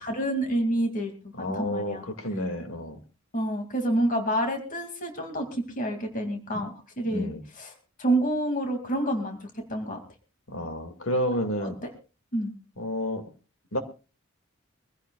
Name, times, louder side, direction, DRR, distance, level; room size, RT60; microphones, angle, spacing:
voice 1, 0.0-2.0 3.3-7.7 8.0-9.4 9.7-10.0 11.6-11.9 12.3-12.5, right 1 dB, 40° left, 2.5 m, -28 dB
voice 2, 1.4-3.0 6.5-6.7 7.1-7.4 10.5-11.8 12.8-13.3 13.7-13.8, equal, 75° left, 2.2 m, -30 dB
24.0 x 15.5 x 2.4 m
head